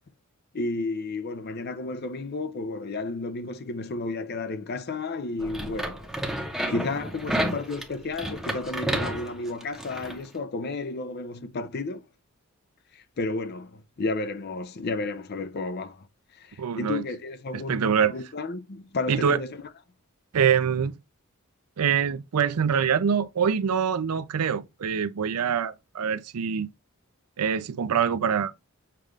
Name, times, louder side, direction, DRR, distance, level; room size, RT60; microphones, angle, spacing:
voice 1, 0.5-6.1 6.7-12.1 12.9-16.1 16.3-19.6, left 3 dB, 45° left, 0.5 m, -32 dB
sound 1, 5.4-10.2, right 1 dB, ahead, 0.8 m, -31 dB
voice 2, 16.6-17.0 17.5-18.1 19.1-19.4 20.3-20.9 21.8-26.7 27.4-28.5, right 7 dB, 90° right, 0.5 m, -24 dB
6.8 x 2.4 x 3.1 m
head